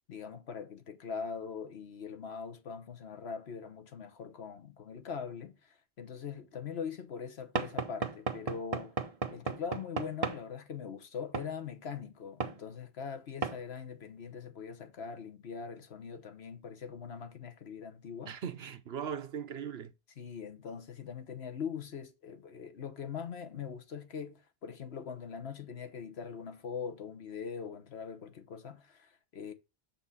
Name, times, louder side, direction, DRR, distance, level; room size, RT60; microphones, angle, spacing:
voice 1, 0.1-9.0 9.3-18.4 20.2-29.5, left 6 dB, 75° left, 1.3 m, -42 dB
Knock / Wood, 7.6-10.4 11.3-11.5 12.4-12.6 13.4-13.6, right 5 dB, 35° right, 0.8 m, -35 dB
voice 2, 18.3-19.9, right 7 dB, 70° right, 1.1 m, -39 dB
7.0 x 4.3 x 5.5 m
omnidirectional pair, 1.1 m